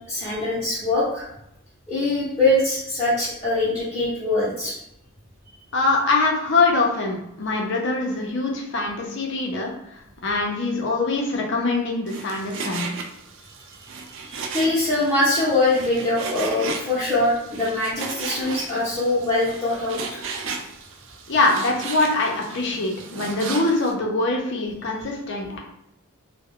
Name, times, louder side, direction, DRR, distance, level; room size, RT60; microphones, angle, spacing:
voice 1, 0.1-1.2 1.9-4.7 14.2-20.2, left 2 dB, 10° left, -12 dB, 0.7 m, -23 dB
voice 2, 5.7-9.7 10.2-12.8 21.3-25.6, left 3 dB, 50° left, 0 dB, 0.5 m, -23 dB
Frying (food), 12.1-23.9, right 4 dB, 55° right, 0.3 m, -35 dB
2.2 x 2.0 x 3.5 m, 0.84 s
head